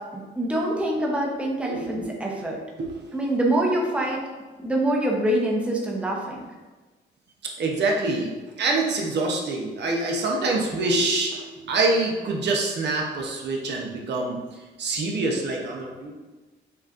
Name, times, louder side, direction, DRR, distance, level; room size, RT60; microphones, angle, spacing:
voice 1, 0.1-2.6 3.1-4.2 4.6-6.4, right 1 dB, 5° right, -2 dB, 0.8 m, -25 dB
voice 2, 1.7-2.2 2.8-3.1 7.6-14.4 14.8-16.2, right 2 dB, 60° right, 0 dB, 0.8 m, -26 dB
6.8 x 2.4 x 2.5 m, 1.2 s
cardioid pair, 90°, 20 cm